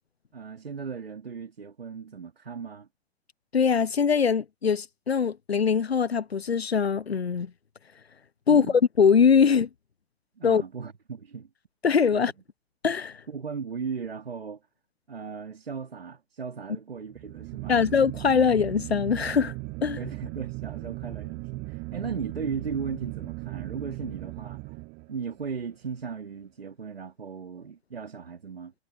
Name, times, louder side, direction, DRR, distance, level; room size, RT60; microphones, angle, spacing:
voice 1, 0.3-2.9 8.5-8.8 10.4-11.5 12.1-12.3 13.3-14.6 15.1-17.8 19.9-24.7 25.1-28.7, right 6 dB, 75° right, 2.8 m, -37 dB
voice 2, 3.5-7.5 8.5-8.7 9.0-9.7 10.4-10.6 11.8-12.3 12.8-13.2 17.7-19.5 19.8-20.0, left 6 dB, 90° left, 0.6 m, -22 dB
sound 1, 17.1-25.4, right 29 dB, 35° right, 2.8 m, -37 dB
figure-of-eight pair, 100°, 30 cm